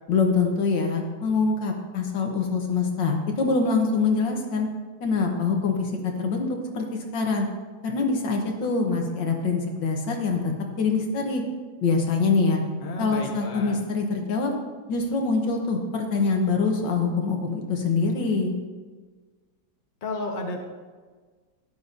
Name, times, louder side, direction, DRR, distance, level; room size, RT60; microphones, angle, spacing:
voice 1, 0.1-4.7 5.0-5.8 6.0-6.5 6.8-6.9 7.1-7.5 7.8-10.5 10.8-11.4 11.8-12.6 13.0-14.5 14.9-18.5, left 4 dB, 75° left, 2 dB, 1.9 m, -24 dB
voice 2, 12.8-13.8 20.0-20.6, left 1 dB, 30° left, 1 dB, 1.1 m, -32 dB
12.5 x 10.0 x 2.7 m, 1.4 s
omnidirectional pair, 2.1 m